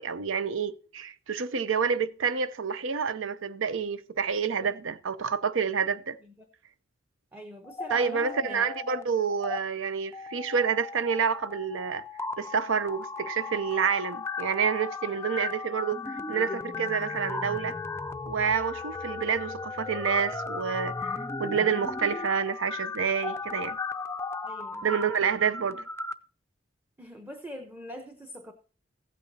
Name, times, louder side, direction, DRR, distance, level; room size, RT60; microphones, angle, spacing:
voice 1, 0.0-6.2 7.9-12.0 12.4-17.8 18.3-23.8 24.8-25.8, right 6 dB, 85° right, 0.6 m, -28 dB
voice 2, 7.3-8.7 24.4-24.9 27.0-28.5, equal, 10° right, 0.8 m, -43 dB
sound 1, 7.6-9.0 9.3-9.6 10.1-26.1, left 4 dB, 15° left, 0.4 m, -36 dB
15.0 x 8.5 x 2.8 m
head